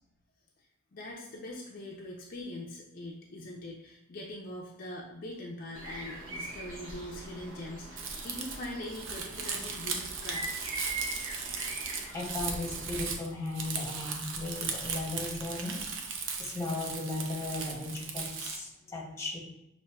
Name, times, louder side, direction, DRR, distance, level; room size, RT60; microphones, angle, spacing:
voice 1, 0.9-10.7, left 1 dB, 45° left, -2 dB, 0.4 m, -42 dB
sound 1, 5.7-13.0, right 2 dB, 90° right, 1.0 m, -42 dB
Crumpling crinkling, 8.0-18.6, right 5 dB, 70° right, 0.5 m, -37 dB
voice 2, 12.1-15.8 16.1-19.4, left 2 dB, 15° left, -3 dB, 0.8 m, -36 dB
5.7 x 2.6 x 2.2 m, 0.89 s
head